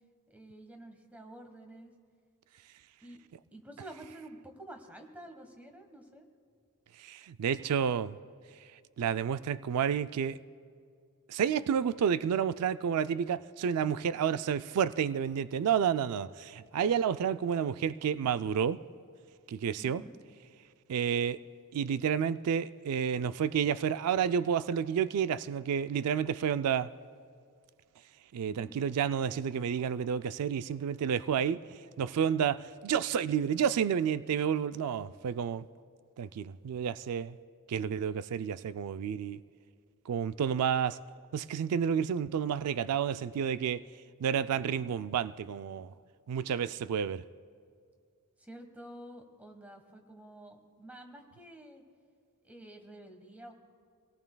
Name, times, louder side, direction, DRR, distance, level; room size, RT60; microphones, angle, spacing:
voice 1, 0.3-1.9 3.0-3.2 3.5-6.3 19.8-20.2 28.4-28.8 48.4-51.8 52.4-53.6, right 1 dB, 5° right, 5 dB, 1.3 m, -49 dB
voice 2, 7.0-8.2 9.0-10.4 11.3-18.8 19.5-20.0 20.9-21.4 21.7-26.9 28.3-31.6 32.0-35.7 36.2-37.4 37.7-39.4 40.1-41.0 41.3-43.8 44.2-45.9 46.3-47.2, right 8 dB, 90° right, 14 dB, 0.4 m, -30 dB
25.5 x 18.0 x 2.3 m, 2.2 s
head